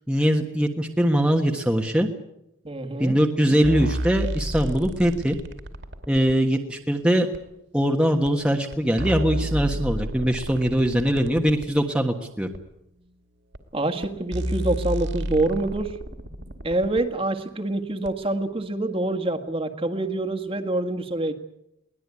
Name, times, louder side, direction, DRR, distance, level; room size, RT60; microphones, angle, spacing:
voice 1, 0.1-2.1 3.0-5.4 6.1-7.3 7.7-12.5, equal, 5° right, 2 dB, 1.4 m, -22 dB
voice 2, 2.6-3.1 13.7-15.9 16.6-21.3, right 2 dB, 25° right, 5 dB, 1.8 m, -26 dB
sound 1, 3.6-6.4 7.3-7.4 8.2-8.3 8.7-11.7 12.5-12.6 13.5-13.6 14.0-14.1 14.3-17.0 18.0-18.1, equal, 55° right, 2.6 m, -31 dB
22.5 x 19.0 x 9.7 m, 0.84 s
head